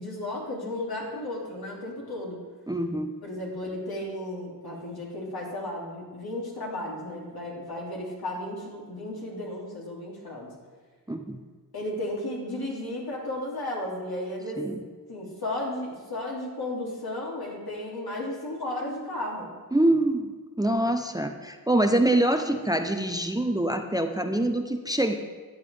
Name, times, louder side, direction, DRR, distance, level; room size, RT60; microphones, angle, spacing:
voice 1, 0.0-2.4 3.2-10.5 11.7-14.6 15.1-19.5, left 1 dB, 65° left, -4 dB, 3.0 m, -34 dB
voice 2, 2.7-3.1 11.1-11.4 14.6-14.8 19.7-20.3 20.6-25.1, right 1 dB, 10° right, 6 dB, 0.7 m, -25 dB
12.5 x 8.3 x 3.5 m, 1.5 s
cardioid pair, 45°, 39 cm